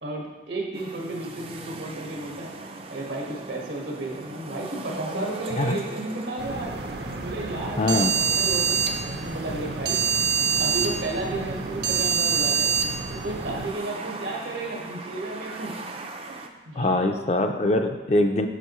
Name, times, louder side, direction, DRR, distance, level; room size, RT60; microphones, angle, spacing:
voice 1, 0.0-2.5 2.9-6.8 7.2-10.0 10.6-12.7 13.1-15.7 16.2-17.2, right 2 dB, 85° right, -2 dB, 1.6 m, -33 dB
sound 1, 0.7-16.5, right 2 dB, 30° right, 0.4 m, -40 dB
sound 2, 6.4-13.7, right 6 dB, 65° right, 0.7 m, -26 dB
voice 2, 7.8-8.1 16.8-18.5, left 2 dB, 35° left, 6 dB, 0.4 m, -22 dB
8.1 x 6.4 x 3.1 m, 1.2 s
head